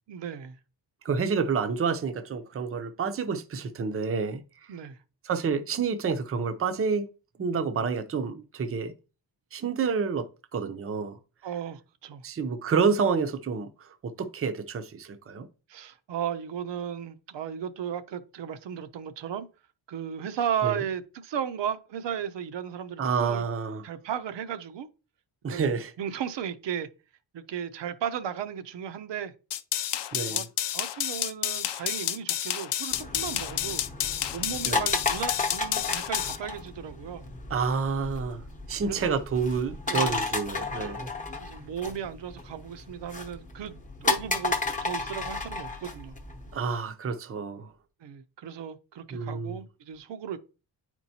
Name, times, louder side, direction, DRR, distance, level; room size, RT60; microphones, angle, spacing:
voice 1, 0.1-0.6 4.7-5.0 11.4-12.2 15.7-19.5 19.9-23.4 23.8-24.9 25.5-25.7 26.0-26.9 27.3-29.3 30.3-30.4 30.7-33.8 34.3-37.3 38.9-39.1 39.9-40.2 41.4-46.2 48.0-50.4, right 9 dB, 75° right, 0.7 m, -35 dB
voice 2, 1.0-4.4 5.2-7.1 7.4-8.9 9.5-11.2 12.2-15.5 20.6-20.8 23.0-23.8 25.4-25.9 30.1-30.4 34.6-34.9 37.5-41.1 46.5-47.7 49.1-49.6, right 5 dB, 30° right, 0.6 m, -29 dB
sound 1, 29.5-36.4, left 11 dB, 70° left, 0.6 m, -30 dB
sound 2, 32.9-46.5, left 3 dB, 15° left, 0.8 m, -33 dB
9.6 x 4.5 x 2.8 m
wide cardioid pair, 150°, 44 cm